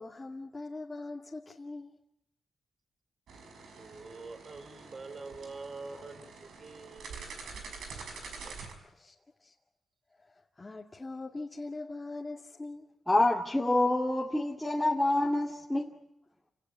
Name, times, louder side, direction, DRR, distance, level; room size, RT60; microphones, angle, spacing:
voice 1, 0.0-2.0 8.9-9.1 9.4-9.5 10.1-12.9, left 2 dB, 20° left, -2 dB, 2.2 m, -42 dB
sound 1, 3.3-8.7, right 4 dB, 90° right, 5.6 m, -46 dB
voice 2, 3.8-7.3 8.2-8.6, right 3 dB, 40° right, 11 dB, 3.2 m, -46 dB
voice 3, 13.1-15.9, left 2 dB, 5° left, -2 dB, 2.3 m, -27 dB
29.5 x 18.0 x 8.7 m, 0.85 s
cardioid pair, 105°, 0 cm